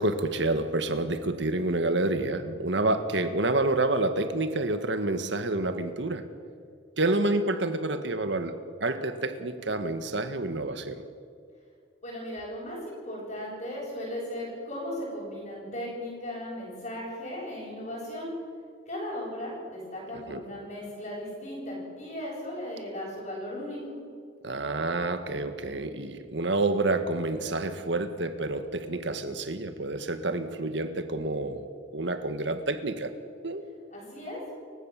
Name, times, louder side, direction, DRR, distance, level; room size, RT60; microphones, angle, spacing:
voice 1, 0.0-6.2 7.0-8.5 8.8-11.0 20.3-20.4 24.4-33.1 33.4-33.7, right 2 dB, 70° right, 9 dB, 1.8 m, -28 dB
voice 2, 12.0-18.3 18.9-24.0 33.9-34.4, left 1 dB, 40° left, -9 dB, 7.7 m, -37 dB
29.0 x 15.5 x 7.6 m, 2.2 s
head